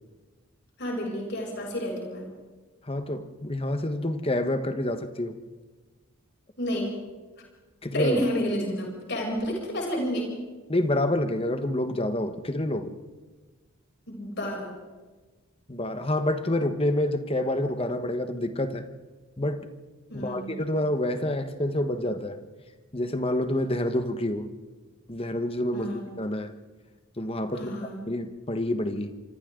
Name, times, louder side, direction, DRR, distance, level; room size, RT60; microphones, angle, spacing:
voice 1, 0.8-2.2 6.6-7.0 7.9-10.3 14.1-14.7 20.1-20.6 25.7-26.0 27.5-28.0, equal, 50° left, -1 dB, 7.2 m, -30 dB
voice 2, 2.9-5.4 7.8-8.2 10.7-12.9 15.7-18.9 19.4-19.7 20.1-22.4 22.9-24.5 25.1-26.5 27.2-29.1, left 1 dB, 25° left, 8 dB, 1.3 m, -28 dB
26.5 x 25.0 x 3.9 m, 1.3 s
head